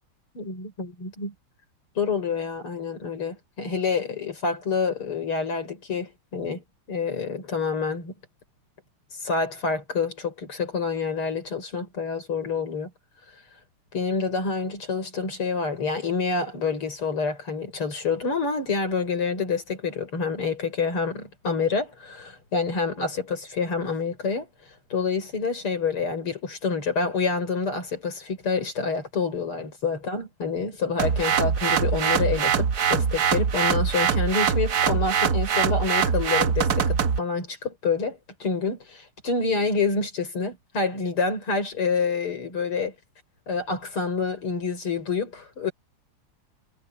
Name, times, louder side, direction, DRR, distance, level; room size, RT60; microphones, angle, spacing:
voice 1, 0.3-1.3 2.0-6.6 6.9-8.1 9.2-12.9 13.9-24.5 24.9-42.9 43.5-45.7, left 4 dB, 90° left, 6.6 m, -27 dB
sound 1, 31.0-37.2, right 7 dB, 55° right, 1.5 m, -23 dB
omnidirectional pair, 2.3 m